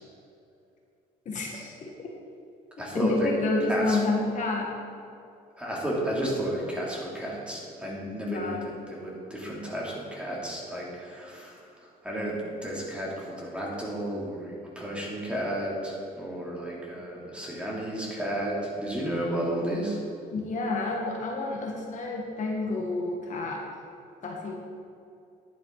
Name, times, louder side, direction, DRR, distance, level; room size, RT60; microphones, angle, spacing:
voice 1, 1.2-2.1 2.9-4.7 8.2-8.7 20.3-23.6 24.2-24.6, left 2 dB, 45° left, -1 dB, 1.5 m, -29 dB
voice 2, 2.8-3.3 3.7-4.0 5.6-11.6 12.0-20.0, right 1 dB, 5° right, -5 dB, 2.8 m, -32 dB
10.5 x 9.3 x 4.0 m, 2.5 s
cardioid pair, 110°, 17 cm